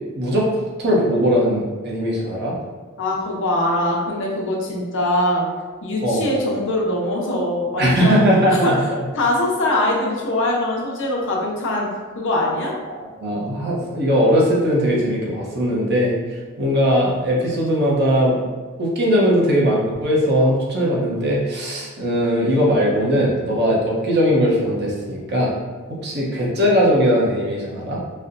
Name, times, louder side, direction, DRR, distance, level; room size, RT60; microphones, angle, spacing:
voice 1, 0.1-2.5 6.0-6.2 7.8-9.0 12.9-18.4 18.8-25.6 25.9-28.0, equal, 50° right, -4 dB, 0.8 m, -19 dB
voice 2, 3.0-5.5 5.8-8.2 8.6-8.7 9.2-11.9 12.2-12.7, left 1 dB, 60° left, -2 dB, 0.7 m, -22 dB
4.1 x 2.1 x 2.5 m, 1.4 s
head